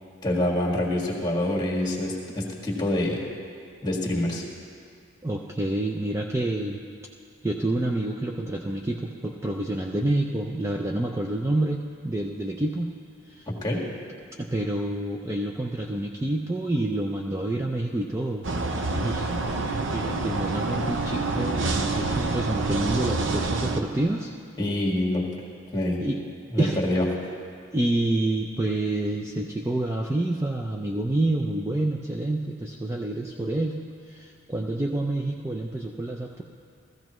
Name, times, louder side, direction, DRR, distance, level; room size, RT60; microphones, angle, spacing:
voice 1, 0.2-3.2 3.8-4.5 13.5-13.8 24.6-25.3 25.7-26.0 26.5-27.0, left 1 dB, 20° left, -3 dB, 1.7 m, -26 dB
voice 2, 5.2-6.8 7.4-12.9 13.2-13.5 14.4-18.5 18.9-19.3 19.9-24.3 26.0-26.2 26.6-26.8 27.7-33.8 34.1-36.4, right 1 dB, 15° right, 0 dB, 0.4 m, -28 dB
sound 1, 18.4-23.8, right 3 dB, 65° right, 0.7 m, -27 dB
15.5 x 14.5 x 3.1 m, 2.3 s
head